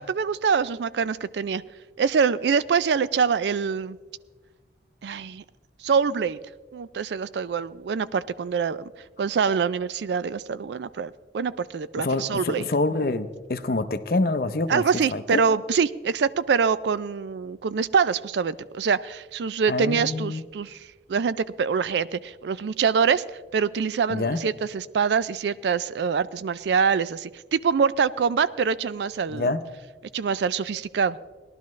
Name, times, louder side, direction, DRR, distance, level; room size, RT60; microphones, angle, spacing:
voice 1, 0.0-1.6 2.0-4.0 5.0-5.4 5.8-6.4 6.7-8.9 9.2-12.7 14.7-29.5 30.1-31.2, right 6 dB, 75° right, 17 dB, 0.4 m, -25 dB
voice 2, 12.0-14.8 15.1-15.4 19.7-20.4 24.1-24.4 29.3-29.6, left 2 dB, 55° left, 11 dB, 0.6 m, -26 dB
18.5 x 11.5 x 3.1 m, 1.3 s
head